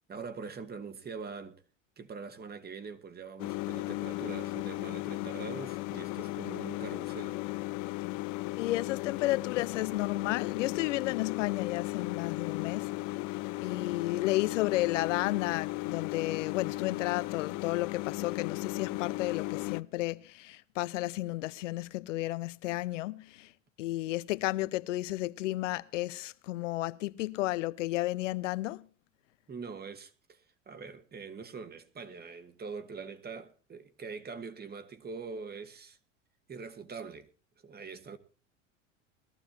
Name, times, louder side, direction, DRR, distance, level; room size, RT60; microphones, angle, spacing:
voice 1, 0.1-1.6 2.0-7.4 29.5-36.0 36.5-37.3 37.6-38.2, right 5 dB, 25° right, 1.9 m, -43 dB
sound 1, 3.4-19.8, left 21 dB, 50° left, 0.7 m, -36 dB
voice 2, 8.6-12.9 13.6-23.5 23.8-28.9, left 18 dB, 70° left, 0.9 m, -32 dB
21.5 x 14.0 x 2.9 m
hypercardioid pair, 85°, 38 cm